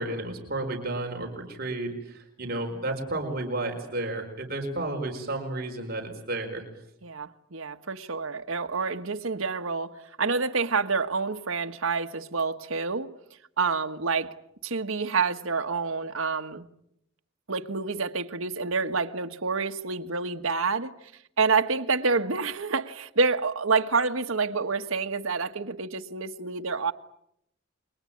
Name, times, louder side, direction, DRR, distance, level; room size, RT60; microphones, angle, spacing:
voice 1, 0.0-6.6, right 2 dB, 45° right, 4.7 m, -32 dB
voice 2, 7.0-13.1 13.6-14.3 14.6-16.7 17.5-20.9 21.4-26.9, right 4 dB, 80° right, 1.5 m, -28 dB
29.0 x 23.0 x 8.7 m
head